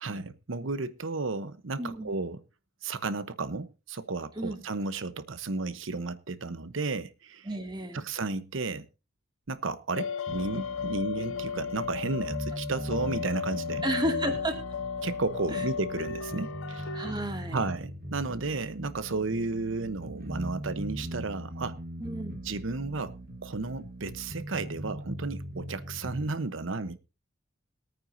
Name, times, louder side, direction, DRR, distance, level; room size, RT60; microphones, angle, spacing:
voice 1, 0.0-2.4 2.8-7.5 7.9-8.9 9.5-13.8 15.0-16.9 17.5-21.8 22.4-23.2 23.4-27.0, right 3 dB, 85° right, 0.9 m, -33 dB
voice 2, 1.8-2.1 4.4-4.6 7.4-8.1 13.8-14.6 15.5-15.7 16.9-17.6 22.0-22.4, right 1 dB, 25° right, 2.3 m, -32 dB
sound 1, 9.9-17.1, left 6 dB, 90° left, 0.6 m, -35 dB
sound 2, 10.3-26.3, right 1 dB, 50° right, 1.6 m, -40 dB
21.5 x 9.2 x 2.7 m
head